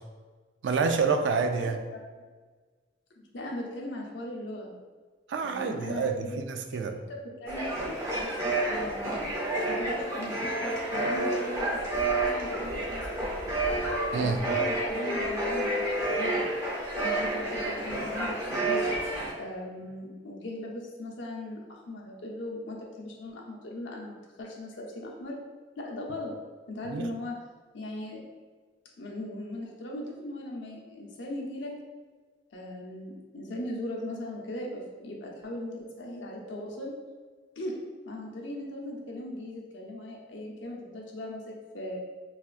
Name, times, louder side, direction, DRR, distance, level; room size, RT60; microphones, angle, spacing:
voice 1, 0.6-1.8 5.3-6.9 14.1-14.4 26.9-27.1, right 5 dB, 75° right, 6 dB, 0.3 m, -28 dB
voice 2, 1.6-2.0 3.2-4.8 5.4-6.4 6.7-9.3 9.7-13.3 14.2-16.4 17.0-18.8 19.4-25.4 25.8-26.3 26.7-27.3 27.7-28.2 29.0-31.7 32.5-36.9 37.6-37.8 38.1-42.0, left 1 dB, 80° left, -1 dB, 0.6 m, -38 dB
sound 1, 7.5-19.3, right 2 dB, 20° right, 0.7 m, -29 dB
4.1 x 2.3 x 2.4 m, 1.4 s
head